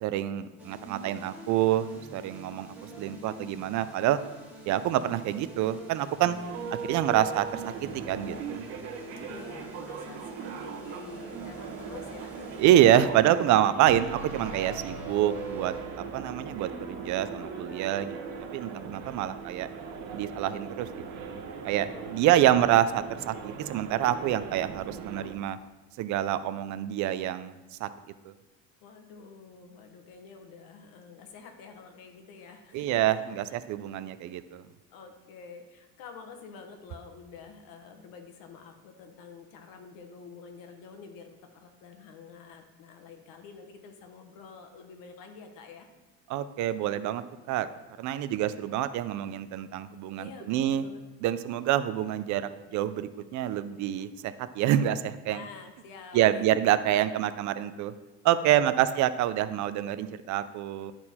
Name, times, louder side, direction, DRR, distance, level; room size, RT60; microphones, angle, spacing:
voice 1, 0.0-4.2 4.7-6.4 6.9-8.7 12.6-18.2 18.5-19.7 20.1-21.3 21.6-25.6 26.0-27.5 27.8-27.9 28.2-28.3 32.7-33.2 33.5-34.6 46.3-47.7 48.0-50.8 51.2-55.4 56.1-57.9 58.2-60.9, right 12 dB, 55° right, 13 dB, 0.5 m, -27 dB
sound 1, 0.6-18.4, right 2 dB, 5° right, 1.4 m, -44 dB
voice 2, 6.3-6.6 9.3-12.6 21.9-22.5 28.8-33.6 34.9-45.9 50.2-51.0 55.3-56.7 58.5-58.9, left 5 dB, 65° left, 5 dB, 1.1 m, -48 dB
sound 2, 6.4-25.3, right 6 dB, 80° right, 1.3 m, -40 dB
10.5 x 4.4 x 4.2 m, 1.1 s
cardioid pair, 145°, 37 cm